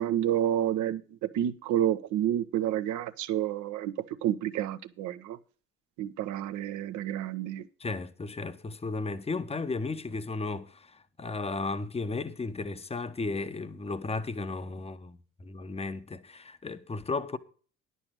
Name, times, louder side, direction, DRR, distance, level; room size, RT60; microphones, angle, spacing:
voice 1, 0.0-3.9 4.2-5.4 6.0-7.6, right 11 dB, 55° right, 1.0 m, -29 dB
voice 2, 7.8-17.4, left 3 dB, 15° left, 1.0 m, -34 dB
11.0 x 6.9 x 6.1 m
figure-of-eight pair, 55°, 36 cm